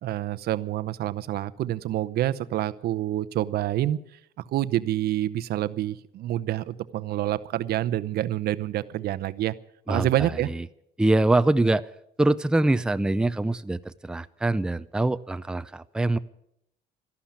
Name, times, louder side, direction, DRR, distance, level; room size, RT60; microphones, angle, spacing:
voice 1, 0.0-4.2 4.5-9.5 9.9-10.5, right 13 dB, 70° right, 14 dB, 0.7 m, -27 dB
voice 2, 11.0-11.9 12.2-16.2, right 2 dB, 5° right, 13 dB, 0.5 m, -24 dB
13.0 x 11.5 x 8.8 m, 0.78 s
cardioid pair, 110°, 17 cm